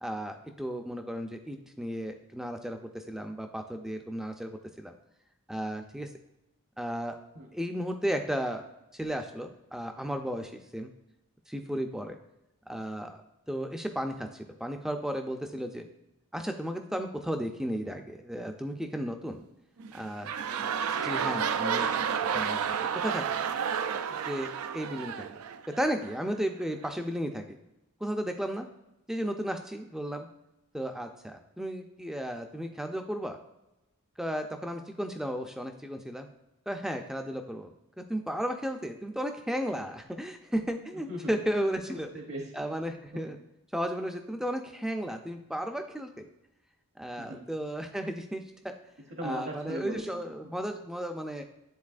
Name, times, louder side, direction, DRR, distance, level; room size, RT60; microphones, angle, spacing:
voice 1, 0.0-4.9 5.5-6.1 6.8-7.2 7.5-8.6 8.9-10.9 11.5-12.2 12.7-13.2 13.5-15.8 16.3-19.4 19.9-20.3 21.0-22.1 22.3-22.8 23.0-23.4 24.1-24.5 24.7-25.3 25.8-27.6 28.0-28.7 29.1-30.3 30.7-33.4 34.2-36.3 36.7-37.7 38.1-42.1 42.5-43.4 43.7-46.3 47.0-48.7 49.2-51.4, equal, ahead, 5 dB, 0.4 m, -34 dB
sound 1, 19.8-26.2 26.8-26.9, right 7 dB, 80° right, 0.4 m, -31 dB
voice 2, 20.4-21.1 41.1-41.3 41.9-42.5 43.2-43.3 47.2-47.4 49.1-50.0, right 1 dB, 50° right, 1 dB, 0.8 m, -39 dB
9.5 x 4.0 x 2.5 m, 0.93 s
head